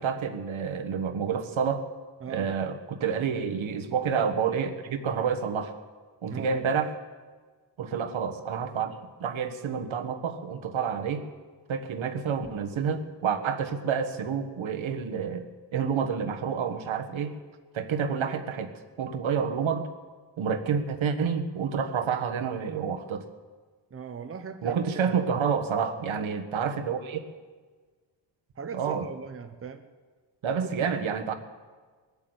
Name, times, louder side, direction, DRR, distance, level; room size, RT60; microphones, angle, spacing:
voice 1, 0.0-1.9 2.3-5.7 6.2-6.9 7.8-8.9 9.2-11.2 11.7-15.4 15.7-17.4 17.7-18.7 19.0-19.9 20.4-23.2 24.6-27.2 28.7-29.1 30.4-31.3, right 6 dB, 75° right, 7 dB, 1.4 m, -29 dB
voice 2, 6.3-6.6 23.9-25.1 28.6-29.9 30.5-30.9, right 5 dB, 30° right, 7 dB, 0.7 m, -39 dB
21.0 x 8.5 x 8.0 m, 1.4 s
wide cardioid pair, 180°, 48 cm